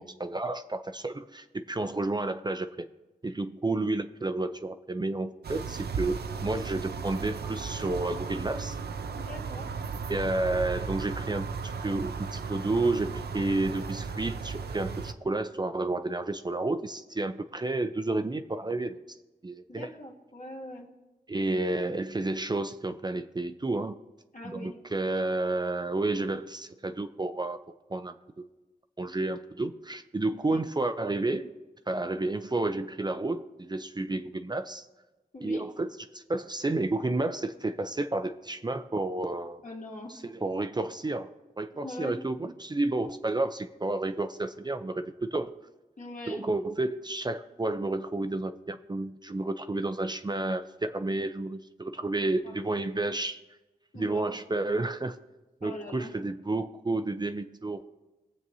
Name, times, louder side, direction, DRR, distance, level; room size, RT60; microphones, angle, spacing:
voice 1, 0.0-2.9 3.2-8.8 10.1-19.0 19.4-19.9 21.3-24.0 24.5-27.6 27.9-28.5 29.0-31.5 31.9-34.9 35.4-39.6 40.1-41.3 41.6-45.6 46.3-53.4 53.9-55.2 55.6-57.8, right 2 dB, 25° right, 8 dB, 0.5 m, -31 dB
sound 1, 5.4-15.1, right 5 dB, 90° right, 0.5 m, -35 dB
voice 2, 9.1-9.7 19.7-20.9 24.3-24.7 30.5-30.7 34.1-34.2 35.3-35.7 39.6-40.2 41.8-42.2 46.0-46.5 52.4-52.8 53.9-54.4 55.6-56.1, left 2 dB, 55° left, -1 dB, 2.2 m, -42 dB
21.0 x 7.5 x 2.7 m, 1.1 s
wide cardioid pair, 70°, 16 cm